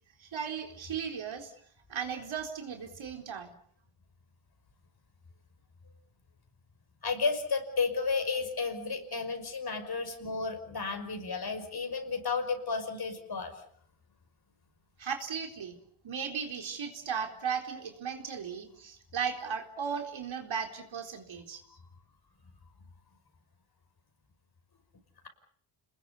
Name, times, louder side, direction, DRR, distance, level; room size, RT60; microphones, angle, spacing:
voice 1, 0.2-1.5 1.9-3.5 15.0-15.8 16.0-21.6, right 7 dB, 70° right, 4 dB, 4.1 m, -36 dB
voice 2, 7.0-13.5, left 4 dB, 50° left, 7 dB, 5.6 m, -32 dB
28.5 x 20.5 x 7.0 m, 0.64 s
cardioid pair, 95°, 49 cm